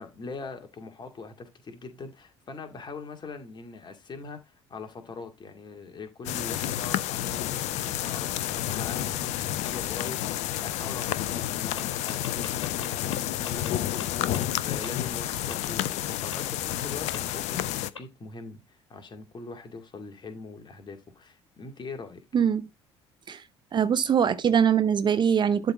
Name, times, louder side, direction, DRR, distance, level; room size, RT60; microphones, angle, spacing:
voice 1, 0.0-22.2, left 4 dB, 30° left, 2.1 m, -42 dB
sound 1, 6.3-17.9, left 13 dB, 50° left, 0.7 m, -30 dB
sound 2, 11.8-11.9 12.1-13.1 13.5-13.7 14.0-14.1 14.3-14.4 14.8-14.9 15.5-15.6 16.3-16.4 17.1-17.2 18.0-18.1, left 5 dB, 80° left, 1.6 m, -39 dB
voice 2, 23.7-25.7, right 8 dB, 30° right, 0.7 m, -22 dB
11.5 x 3.9 x 4.2 m
figure-of-eight pair, 55°, 15 cm